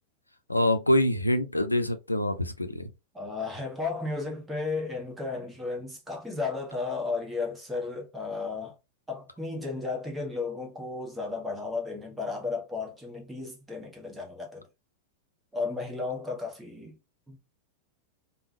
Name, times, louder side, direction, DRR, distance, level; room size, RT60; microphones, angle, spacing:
voice 1, 0.5-2.9, left 1 dB, 85° left, 0.4 m, -25 dB
voice 2, 3.1-8.7 9.1-14.6 15.5-17.0 17.3-17.4, left 4 dB, 10° right, 1.1 m, -34 dB
3.5 x 2.2 x 2.7 m
figure-of-eight pair, 90°, 0 cm